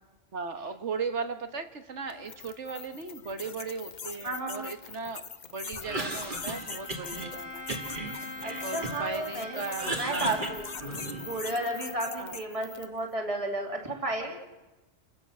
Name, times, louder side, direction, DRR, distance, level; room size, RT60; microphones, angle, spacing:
voice 1, 0.3-7.7 8.6-10.4 12.2-12.4, right 4 dB, 75° right, 7 dB, 1.7 m, -37 dB
sound 1, 2.1-13.0, left 6 dB, 45° left, 0.9 m, -43 dB
voice 2, 4.2-4.7 8.4-9.6 9.9-10.7 11.2-14.4, right 1 dB, 30° right, 1 dB, 2.6 m, -33 dB
Cough, 5.7-7.3 7.7-9.2 9.5-11.4, right 2 dB, 45° right, 2.3 m, -36 dB
Bowed string instrument, 6.1-12.5, left 2 dB, 20° left, 1.3 m, -44 dB
29.0 x 16.0 x 6.2 m, 1.1 s
omnidirectional pair, 1.2 m